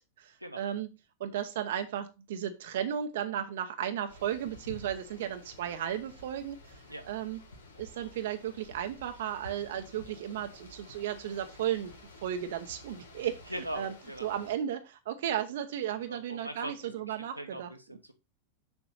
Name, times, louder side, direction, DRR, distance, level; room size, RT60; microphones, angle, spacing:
voice 1, 0.2-0.9 1.2-7.4 7.8-11.9 12.2-13.4 13.7-13.9 14.2-17.7, right 10 dB, 55° right, 8 dB, 0.8 m, -34 dB
sound 1, 4.1-14.5, left 1 dB, 75° left, 1.7 m, -52 dB
voice 2, 13.2-14.3 15.9-18.1, right 1 dB, 90° right, 5 dB, 1.1 m, -41 dB
7.0 x 6.0 x 4.0 m, 0.27 s
figure-of-eight pair, 90°, 0 cm